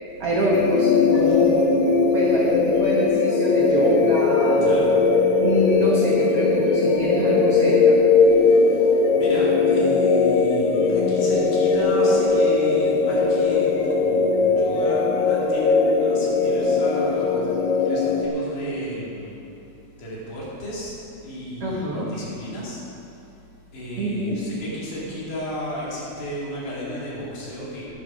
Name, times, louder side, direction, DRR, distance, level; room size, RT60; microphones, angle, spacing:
voice 1, 0.2-1.7 2.1-4.6 5.4-8.0 21.6-22.2 24.0-24.5, right 1 dB, 80° right, -4 dB, 1.3 m, -24 dB
sound 1, 0.5-18.3, left 4 dB, 70° left, 1.9 m, -19 dB
voice 2, 4.6-4.9 8.3-8.9 9.2-17.5 17.8-19.4 20.0-20.9 21.2-22.8 23.7-27.9, left 1 dB, 55° left, -6 dB, 3.9 m, -33 dB
11.5 x 10.5 x 5.0 m, 2.7 s
omnidirectional pair, 4.6 m